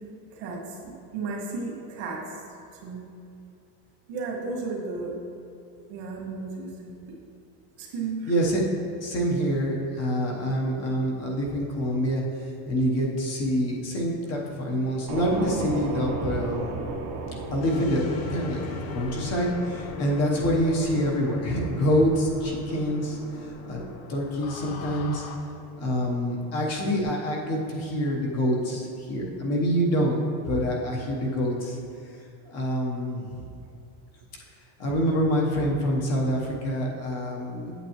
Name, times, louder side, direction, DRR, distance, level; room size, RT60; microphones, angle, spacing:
voice 1, 0.3-2.4 2.8-3.0 4.1-5.2 5.9-6.9 7.8-8.3, right 3 dB, 70° right, -2 dB, 1.9 m, -34 dB
voice 2, 8.2-8.6 9.0-16.8 17.5-23.2 23.6-23.8 24.1-25.2 25.8-31.8 32.4-33.3 34.8-37.7, equal, 35° left, -2 dB, 1.0 m, -26 dB
sound 1, 15.1-27.0, right 3 dB, 40° right, 0.9 m, -38 dB
sound 2, 17.6-25.3, left 4 dB, 80° left, 0.9 m, -39 dB
8.3 x 7.6 x 3.0 m, 2.5 s
cardioid pair, 170°, 45 cm